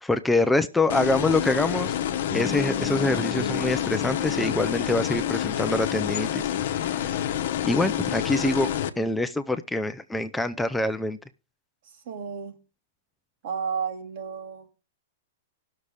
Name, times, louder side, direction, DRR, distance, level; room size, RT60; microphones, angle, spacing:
voice 1, 0.0-2.0 2.3-7.2 7.6-8.7 9.0-11.2, left 2 dB, 5° left, 0.5 m, -25 dB
sound 1, 0.9-8.9, left 10 dB, 60° left, 0.9 m, -28 dB
Bass guitar, 2.3-6.4, left 1 dB, 30° right, 1.7 m, -40 dB
voice 2, 12.1-12.5 13.4-14.7, right 6 dB, 60° right, 2.2 m, -32 dB
18.0 x 6.6 x 3.3 m
hypercardioid pair, 115°, 0 cm